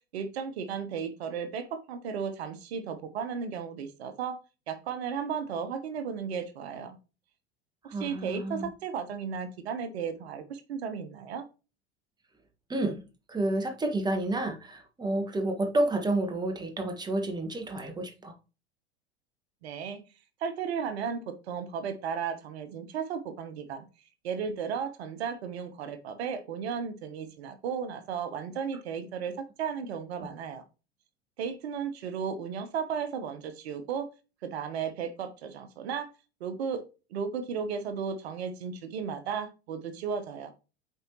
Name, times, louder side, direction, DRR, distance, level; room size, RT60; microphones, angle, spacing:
voice 1, 0.1-4.4 4.7-7.0 7.9-11.5 19.6-20.0 20.4-23.9 24.2-30.6 31.4-34.1 34.4-36.1 36.4-36.8 37.1-40.5, right 6 dB, 65° right, 1.0 m, -34 dB
voice 2, 7.8-8.7 12.7-13.0 13.3-18.3 30.2-30.3, right 2 dB, 10° right, 1.5 m, -30 dB
7.9 x 4.5 x 3.0 m
hypercardioid pair, 90°, 34 cm